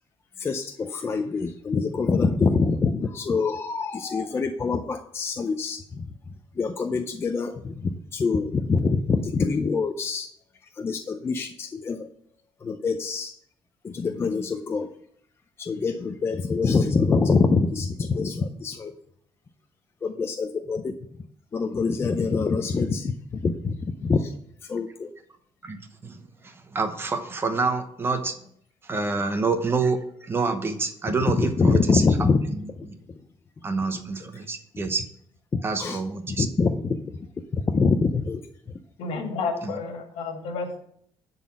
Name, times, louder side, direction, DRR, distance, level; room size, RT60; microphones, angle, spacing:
voice 1, 0.4-6.1 6.6-10.3 10.8-12.1 12.6-13.3 13.8-14.9 15.6-18.9 20.0-20.9 21.5-23.1 23.4-24.3 24.7-25.1 31.4-32.4 32.8-32.9 35.5-36.0 36.3-37.0 37.5-38.4, left 4 dB, 25° left, 6 dB, 0.5 m, -25 dB
voice 2, 25.6-26.2 26.4-28.4 28.8-32.3 32.8-32.9 33.6-35.0 35.6-36.5 39.6-39.7, right 4 dB, 20° right, 8 dB, 0.8 m, -27 dB
voice 3, 39.0-40.8, left 4 dB, 75° left, 4 dB, 2.0 m, -31 dB
11.0 x 4.0 x 7.4 m, 0.67 s
cardioid pair, 165°, 11 cm